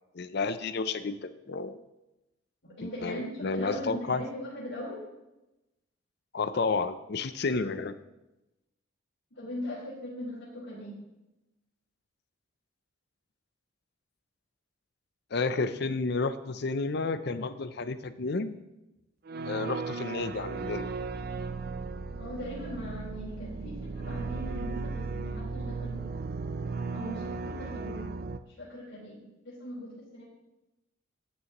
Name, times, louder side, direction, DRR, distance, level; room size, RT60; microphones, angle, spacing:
voice 1, 0.1-1.8 2.8-4.2 6.3-8.0 15.3-18.6 19.4-20.9, left 4 dB, 55° left, 12 dB, 0.5 m, -31 dB
voice 2, 2.6-5.0 9.3-11.0 22.2-26.1 26.9-28.0 28.6-30.2, equal, 75° left, -8 dB, 4.1 m, -40 dB
sound 1, 19.3-28.4, right 4 dB, 50° right, 0.5 m, -36 dB
12.5 x 9.5 x 3.0 m, 0.97 s
head